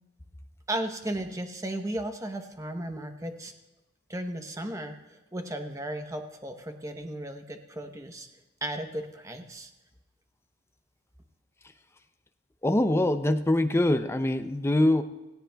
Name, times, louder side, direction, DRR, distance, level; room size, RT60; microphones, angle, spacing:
voice 1, 0.7-3.5 4.1-8.3 8.6-9.7, right 1 dB, 15° right, 6 dB, 0.8 m, -35 dB
voice 2, 12.6-15.0, left 1 dB, 15° left, 9 dB, 0.5 m, -23 dB
17.5 x 16.5 x 2.3 m, 1.1 s
head